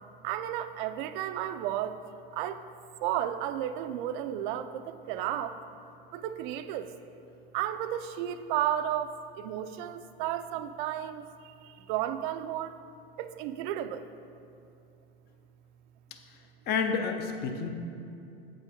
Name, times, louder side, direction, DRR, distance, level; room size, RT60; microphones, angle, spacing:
voice 1, 0.2-2.0 2.3-2.6 3.0-5.6 6.1-6.9 7.5-12.8 13.2-14.1, right 11 dB, 55° right, 11 dB, 0.5 m, -33 dB
voice 2, 16.7-17.7, left 5 dB, 35° left, 5 dB, 0.7 m, -29 dB
7.7 x 5.6 x 5.0 m, 2.7 s
supercardioid pair, 130°, 30 cm